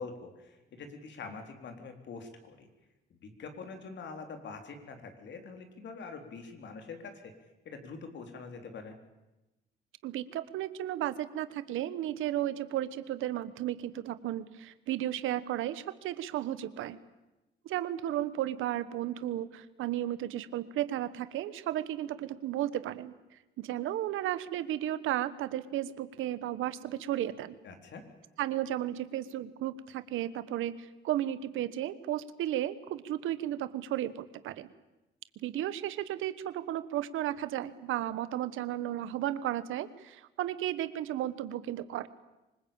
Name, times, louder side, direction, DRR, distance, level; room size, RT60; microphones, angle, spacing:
voice 1, 0.0-2.7 3.1-7.3 7.7-9.0 27.6-28.0, left 4 dB, 65° left, 6 dB, 3.8 m, -44 dB
voice 2, 10.0-17.0 17.6-23.1 23.6-27.6 28.4-34.7 35.4-42.1, right 12 dB, 85° right, 14 dB, 1.3 m, -34 dB
25.0 x 20.0 x 8.9 m, 1.0 s
cardioid pair, 90°, 20 cm